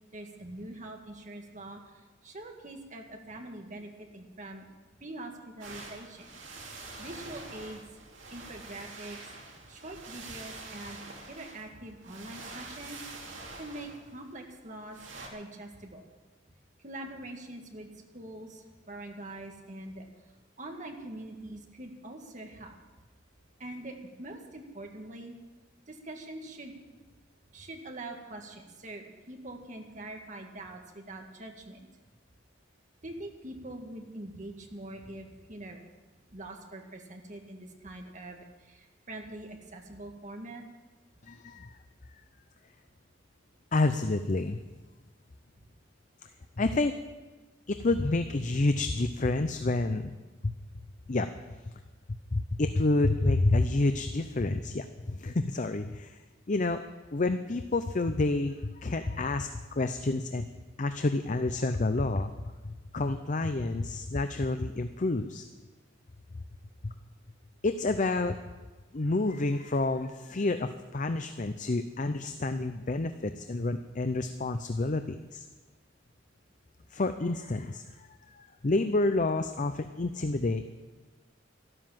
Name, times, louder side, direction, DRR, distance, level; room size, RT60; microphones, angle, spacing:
voice 1, 0.1-4.7 5.0-6.3 7.0-7.8 8.3-9.3 9.7-13.0 13.6-15.0 15.3-16.0 16.8-17.9 18.1-20.0 20.6-22.8 23.6-25.3 25.9-26.7 27.5-31.8 33.0-35.8 36.3-40.6 45.6-45.7, right 1 dB, 40° right, 3 dB, 2.0 m, -44 dB
sound 1, 5.6-15.3, right 3 dB, 80° right, 2.7 m, -46 dB
voice 2, 41.2-41.7 43.7-44.6 46.6-47.0 47.7-50.2 50.4-50.5 51.1-51.3 52.3-56.2 56.5-56.8 57.1-60.5 60.8-62.3 62.6-65.4 66.8-66.9 67.6-68.4 68.9-75.5 76.9-80.6, left 2 dB, 40° left, 9 dB, 0.6 m, -29 dB
12.5 x 12.5 x 7.5 m, 1.3 s
head